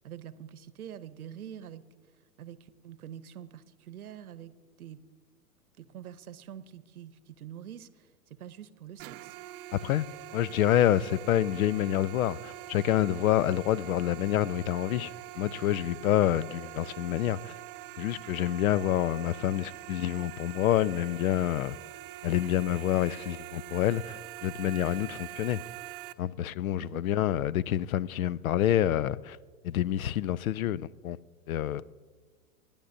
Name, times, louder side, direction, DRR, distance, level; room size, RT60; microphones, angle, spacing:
voice 1, 0.0-1.8 2.4-5.0 5.8-9.4 26.8-27.0, right 10 dB, 75° right, 0.9 m, -45 dB
sound 1, 9.0-26.1, right 16 dB, 40° right, 0.7 m, -44 dB
voice 2, 10.3-17.5 18.0-21.8 22.2-25.6 26.2-29.4 29.6-31.2 31.5-31.9, left 12 dB, 70° left, 0.6 m, -27 dB
29.5 x 10.5 x 2.6 m
hypercardioid pair, 110°, 44 cm